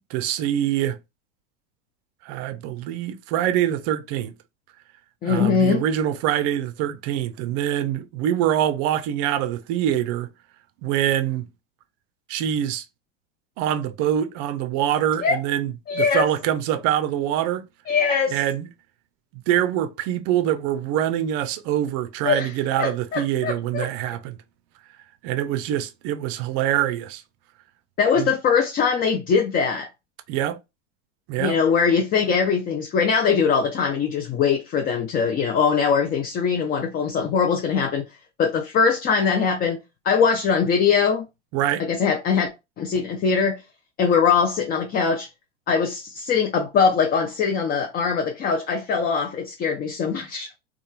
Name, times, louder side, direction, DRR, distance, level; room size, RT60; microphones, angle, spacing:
voice 1, 0.1-1.0 2.2-4.3 5.2-10.3 10.8-11.5 12.3-12.8 13.6-17.6 18.3-18.7 19.3-24.4 25.2-27.2 28.2-28.3 30.3-30.6 31.3-31.6 41.5-41.8, right 11 dB, 45° right, 0.5 m, -24 dB
voice 2, 5.2-5.8 15.2-15.4 15.9-16.2 17.9-18.4 22.2-22.5 22.8-23.9 28.0-29.9 31.4-38.0 38.4-39.8 40.0-41.3 41.9-42.5 42.8-43.6 44.0-45.3 45.7-50.5, left 6 dB, 25° left, 0.4 m, -21 dB
2.9 x 2.3 x 2.3 m
hypercardioid pair, 90°, 37 cm